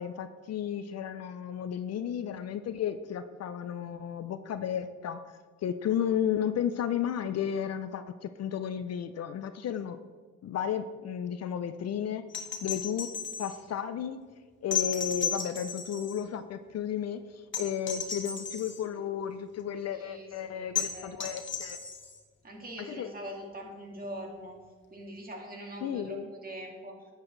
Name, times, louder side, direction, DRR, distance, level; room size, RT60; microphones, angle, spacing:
voice 1, 0.0-5.2 5.6-10.0 10.4-12.2 12.6-13.1 13.4-14.2 14.6-21.8 22.9-23.1 25.8-26.3, left 9 dB, 55° left, 10 dB, 0.6 m, -33 dB
sound 1, 12.3-13.6 14.7-16.2 17.5-18.8 20.7-22.2 24.0-24.1, left 7 dB, 40° left, 1.3 m, -34 dB
voice 2, 19.9-21.2 22.4-24.6 24.9-27.0, equal, 30° right, 0 dB, 2.3 m, -43 dB
10.5 x 8.4 x 3.3 m, 1.5 s
cardioid pair, 90°, 30 cm